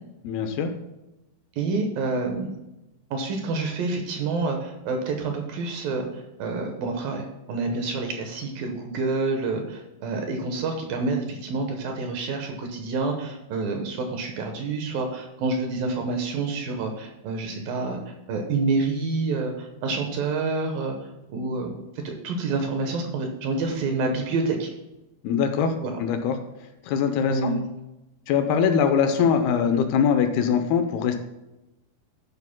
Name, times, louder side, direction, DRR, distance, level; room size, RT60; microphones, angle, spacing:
voice 1, 0.2-0.7 25.2-25.7 26.0-26.4 26.9-27.5 28.3-31.2, left 7 dB, 80° left, 7 dB, 2.6 m, -22 dB
voice 2, 1.6-2.5 3.1-18.0 18.3-21.0 21.3-21.8 22.0-24.7 25.8-25.9 27.3-27.7, right 3 dB, 70° right, 3 dB, 2.6 m, -28 dB
12.0 x 10.5 x 2.2 m, 0.97 s
omnidirectional pair, 4.8 m